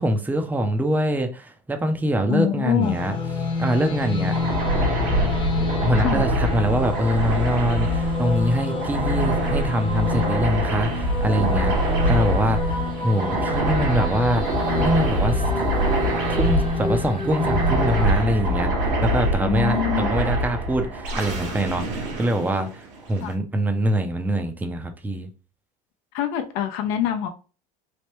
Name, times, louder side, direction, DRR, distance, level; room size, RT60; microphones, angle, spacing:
voice 1, 0.0-3.2 3.6-4.4 5.8-11.8 12.1-14.4 14.8-15.9 16.3-18.7 19.0-25.3, equal, 10° right, 0.5 m, -24 dB
voice 2, 2.3-2.9 5.9-6.2 19.4-20.1 23.2-23.4 26.1-27.3, left 10 dB, 70° left, 0.6 m, -25 dB
sound 1, 2.8-18.1, left 3 dB, 25° left, 0.8 m, -28 dB
sound 2, 4.3-23.2, right 1 dB, 70° right, 1.1 m, -24 dB
3.2 x 2.1 x 3.0 m
supercardioid pair, 100°, 21 cm